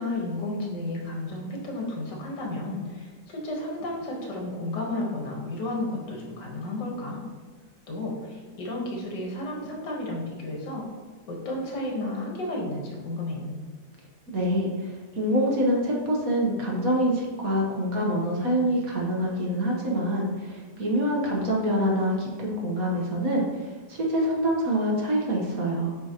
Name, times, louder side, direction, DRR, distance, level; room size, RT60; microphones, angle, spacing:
voice 1, 0.0-7.2 7.9-10.8 11.3-13.6, left 2 dB, 75° left, -1 dB, 1.9 m, -32 dB
voice 2, 14.3-25.9, equal, 55° right, -2 dB, 1.5 m, -26 dB
8.5 x 4.5 x 2.9 m, 1.4 s
omnidirectional pair, 1.9 m